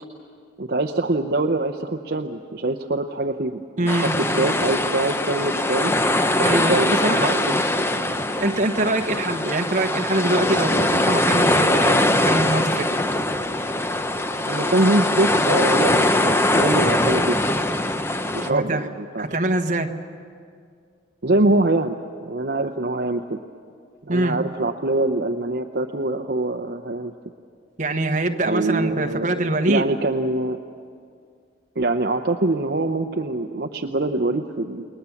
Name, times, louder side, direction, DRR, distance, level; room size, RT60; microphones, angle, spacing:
voice 1, 0.6-5.9 6.4-6.9 7.3-8.2 9.1-9.2 14.5-17.4 18.3-19.3 21.2-23.4 24.0-27.1 28.5-30.6 31.8-34.9, right 2 dB, 55° right, 6 dB, 0.8 m, -24 dB
voice 2, 3.8-4.5 6.4-7.3 8.4-12.9 18.5-18.9 19.2-19.9 24.1-24.4 27.8-29.9, right 2 dB, 40° right, 5 dB, 1.2 m, -23 dB
sound 1, 3.9-18.5, left 1 dB, 15° left, 0.7 m, -22 dB
29.5 x 20.5 x 7.2 m, 2.2 s
head